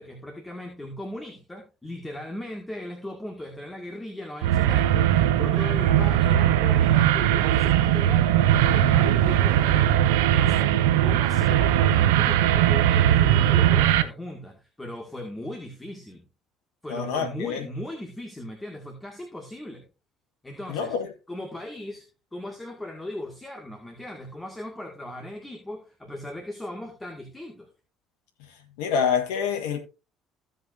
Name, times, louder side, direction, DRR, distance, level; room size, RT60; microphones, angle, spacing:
voice 1, 0.0-16.2 16.8-19.8 20.4-21.0 21.3-22.1 22.3-27.7, left 1 dB, 15° left, 2.0 m, -38 dB
sound 1, 4.4-14.0, right 11 dB, 85° right, 0.6 m, -20 dB
voice 2, 16.9-17.7 20.7-21.1 28.8-29.8, left 7 dB, 85° left, 1.3 m, -26 dB
15.5 x 5.4 x 2.6 m
hypercardioid pair, 65°, 0 cm